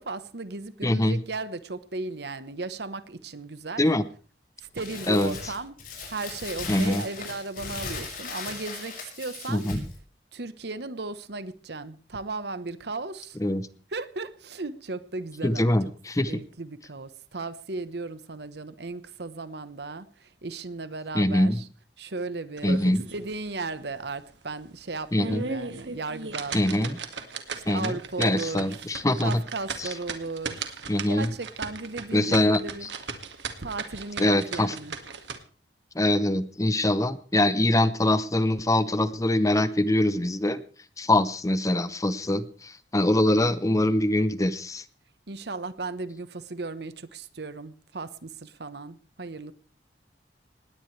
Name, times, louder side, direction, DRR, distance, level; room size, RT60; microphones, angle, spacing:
voice 1, 0.0-3.8 4.7-5.7 6.1-9.7 10.3-13.4 13.9-15.9 16.3-21.7 22.0-27.0 27.5-28.9 29.2-30.8 31.1-32.9 33.6-34.9 45.3-49.5, right 3 dB, 65° right, 1.1 m, -36 dB
voice 2, 0.8-1.2 3.8-4.0 5.1-5.3 6.7-7.0 9.5-9.8 13.4-13.7 15.4-16.3 21.1-21.6 22.6-23.0 25.1-25.4 26.5-27.0 27.7-29.4 29.8-29.9 30.9-31.3 32.1-32.6 34.2-34.7 35.9-40.6 41.0-44.8, left 1 dB, 20° left, 0.8 m, -23 dB
Crumpling crinkling, 4.8-10.0, left 4 dB, 55° left, 6.4 m, -38 dB
sound 1, 22.6-23.3 23.7-23.8 24.3-24.4 25.0-35.4, right 4 dB, 80° right, 2.0 m, -36 dB
19.5 x 17.5 x 3.3 m
head